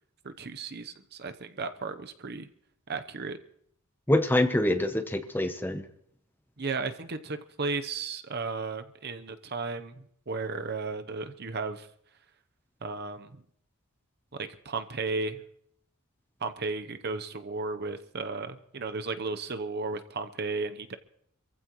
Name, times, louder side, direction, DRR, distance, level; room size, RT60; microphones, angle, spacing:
voice 1, 0.2-2.5 2.9-3.4 6.6-11.9 12.8-13.3 14.3-15.4 16.4-20.9, right 4 dB, 50° right, 9 dB, 0.8 m, -34 dB
voice 2, 4.1-5.8, left 1 dB, 10° left, 8 dB, 0.8 m, -25 dB
27.5 x 15.0 x 3.1 m, 0.66 s
head